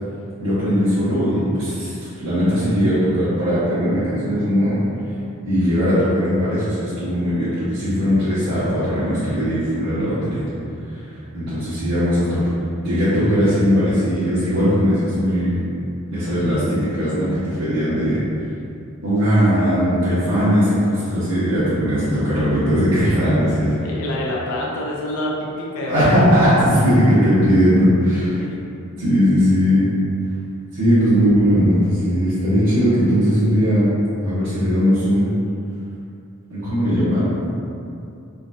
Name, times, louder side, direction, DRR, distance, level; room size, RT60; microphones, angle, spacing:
voice 1, 0.4-4.8 5.4-10.4 11.3-12.4 12.8-15.6 16.0-18.2 19.0-23.7 25.9-28.4 29.0-29.8 30.7-33.9 34.2-35.3 36.5-37.3, equal, 80° right, -14 dB, 1.1 m, -18 dB
voice 2, 23.8-26.1 28.3-28.7, left 1 dB, 85° left, -3 dB, 0.5 m, -27 dB
3.7 x 2.6 x 2.3 m, 2.6 s
head